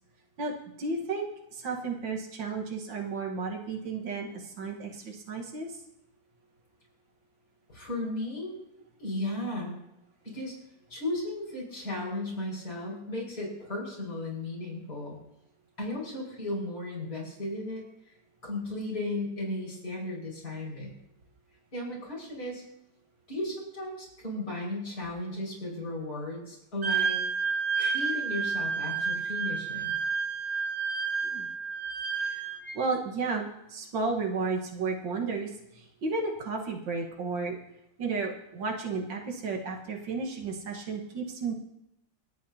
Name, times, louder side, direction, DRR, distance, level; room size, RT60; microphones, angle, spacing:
voice 1, 0.4-5.8 31.2-31.5 32.2-37.6 38.0-41.5, right 4 dB, 80° right, 0 dB, 2.2 m, -33 dB
voice 2, 7.7-8.6 9.0-9.8 10.2-10.5 10.9-15.2 15.8-17.8 18.4-20.9 21.7-22.6 23.3-27.2 27.8-30.0, left 1 dB, 55° left, -4 dB, 6.0 m, -35 dB
Wind instrument woodwind instrument, 26.8-32.8, right 5 dB, 60° right, 3.0 m, -30 dB
27.5 x 9.5 x 2.8 m, 0.85 s
omnidirectional pair, 2.0 m